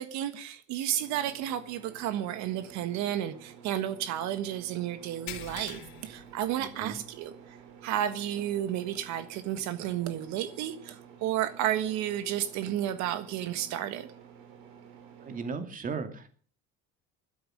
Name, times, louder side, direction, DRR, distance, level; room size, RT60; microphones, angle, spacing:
voice 1, 0.0-7.6 7.8-14.1, right 11 dB, 70° right, 11 dB, 1.6 m, -32 dB
sound 1, 0.9-15.6, right 7 dB, 85° right, 4.6 m, -51 dB
sound 2, 5.3-7.1 7.5-7.7 8.2-8.3 9.9-10.0, left 11 dB, 70° left, 2.2 m, -45 dB
voice 2, 6.6-7.0 15.2-16.3, right 5 dB, 30° right, 8 dB, 2.4 m, -36 dB
16.5 x 12.5 x 6.5 m, 0.43 s
cardioid pair, 160°, 29 cm